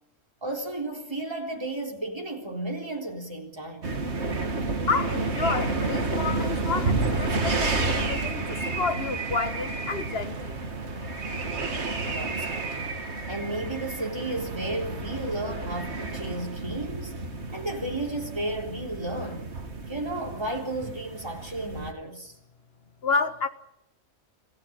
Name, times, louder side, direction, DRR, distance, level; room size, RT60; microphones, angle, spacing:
voice 1, 0.4-3.9 12.0-12.7 13.3-17.1 17.5-19.5 19.9-22.3, right 1 dB, 15° right, 3.8 m, -33 dB
sound 1, 3.8-21.9, right 3 dB, 50° right, 2.1 m, -31 dB
voice 2, 4.9-10.6 23.0-23.5, left 4 dB, 45° left, 1.7 m, -30 dB
26.5 x 15.5 x 9.0 m
omnidirectional pair, 1.5 m